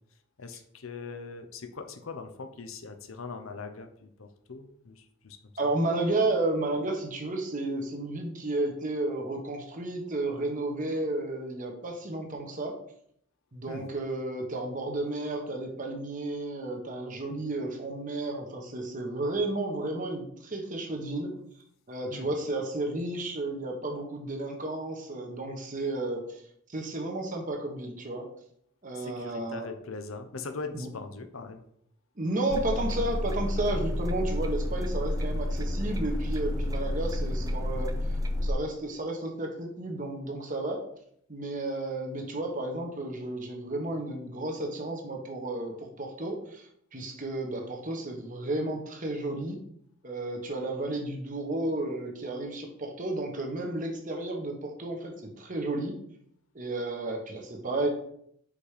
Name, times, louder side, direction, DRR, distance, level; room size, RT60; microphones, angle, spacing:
voice 1, 0.4-5.4 13.7-13.9 22.1-22.3 28.9-31.6 37.4-37.5, left 4 dB, 80° left, 8 dB, 0.7 m, -41 dB
voice 2, 5.6-12.7 13.5-21.3 21.9-26.4 26.7-28.3 28.8-29.7 30.7-30.9 32.2-37.9 38.4-40.8 41.3-49.6 50.0-56.0 56.5-57.9, right 2 dB, 40° right, 2 dB, 1.2 m, -32 dB
sound 1, 32.5-38.5, left 1 dB, 15° right, 0.5 m, -30 dB
5.1 x 4.2 x 5.0 m, 0.69 s
head